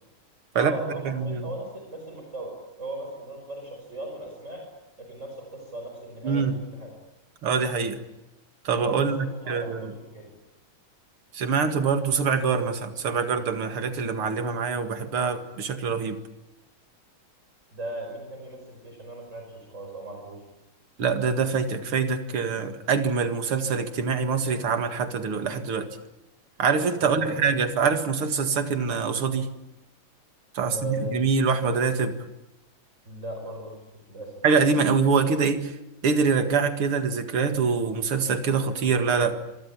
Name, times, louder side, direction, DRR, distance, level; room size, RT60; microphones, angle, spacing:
voice 1, 0.5-4.7 5.0-6.9 9.0-10.3 17.7-20.4 27.0-27.4 30.6-31.3 33.1-34.3, right 1 dB, 35° right, 2 dB, 5.8 m, -37 dB
voice 2, 1.1-1.5 6.2-6.6 7.4-8.0 8.6-9.9 11.3-16.2 21.0-25.9 26.6-29.5 30.5-32.2 34.4-35.7 36.0-39.4, right 5 dB, 85° right, 7 dB, 2.8 m, -24 dB
26.5 x 24.0 x 8.6 m, 0.90 s
omnidirectional pair, 2.3 m